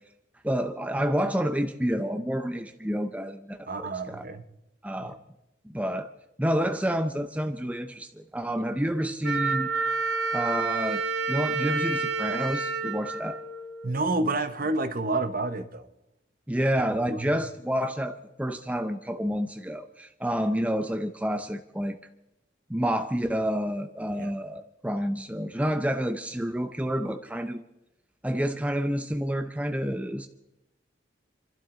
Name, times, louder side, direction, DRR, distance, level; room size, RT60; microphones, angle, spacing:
voice 1, 0.4-4.2 4.8-5.2 5.7-6.1 6.4-9.7 10.3-11.0 11.3-13.4 16.5-22.0 22.7-27.6 28.2-30.3, equal, 5° right, 0.6 m, -29 dB
voice 2, 3.7-4.4 5.0-5.1 13.8-15.8 16.8-17.3 24.1-24.3, right 2 dB, 45° right, 0.9 m, -29 dB
Wind instrument woodwind instrument, 9.2-14.0, right 4 dB, 65° right, 1.5 m, -29 dB
29.5 x 12.0 x 3.8 m
head